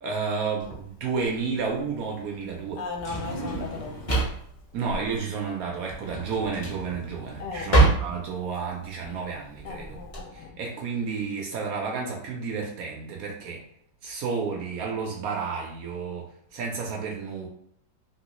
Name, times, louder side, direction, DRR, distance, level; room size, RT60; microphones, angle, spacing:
voice 1, 0.0-2.8 4.7-10.0 10.3-13.6 14.0-16.3 16.5-17.5, right 5 dB, 75° right, -1 dB, 0.8 m, -31 dB
Drawer open or close, 0.6-10.2, right 2 dB, 25° left, 0.7 m, -27 dB
voice 2, 2.8-3.9 7.4-7.8 9.6-10.5, left 4 dB, 70° left, 1 dB, 1.2 m, -36 dB
3.0 x 3.0 x 3.0 m, 0.67 s
omnidirectional pair, 2.2 m